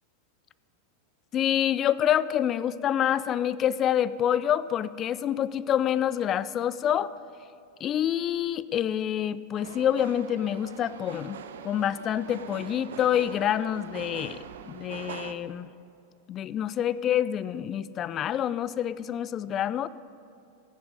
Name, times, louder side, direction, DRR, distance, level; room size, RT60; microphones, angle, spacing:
voice 1, 1.3-7.1 7.8-11.4 11.6-14.4 14.7-15.7 16.3-19.9, left 10 dB, 30° left, 17 dB, 0.4 m, -27 dB
sound 1, 9.5-15.3, right 8 dB, 60° right, 0.6 m, -42 dB
13.5 x 10.0 x 5.2 m, 2.7 s
figure-of-eight pair, 90°, 0 cm